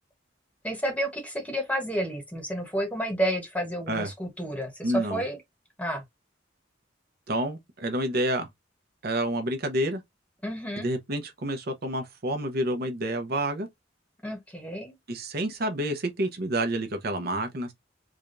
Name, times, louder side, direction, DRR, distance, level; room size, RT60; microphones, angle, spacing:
voice 1, 0.6-5.4 5.8-6.0 10.4-10.9 14.2-14.9, right 1 dB, 5° left, 1.1 m, -30 dB
voice 2, 4.8-5.2 7.3-8.5 9.0-10.0 10.8-13.7 15.1-17.7, right 1 dB, 55° right, 0.8 m, -29 dB
4.9 x 2.3 x 2.5 m
head